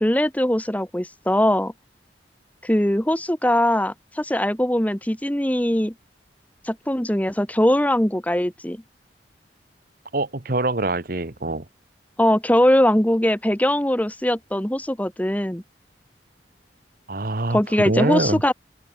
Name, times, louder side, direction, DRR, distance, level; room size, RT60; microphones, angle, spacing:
voice 1, 0.0-1.7 2.6-5.9 6.6-8.8 12.2-15.6 17.5-18.5, left 1 dB, 10° left, 1.3 m, -21 dB
voice 2, 10.1-11.6 17.1-18.4, right 2 dB, 55° right, 1.4 m, -24 dB
open air
head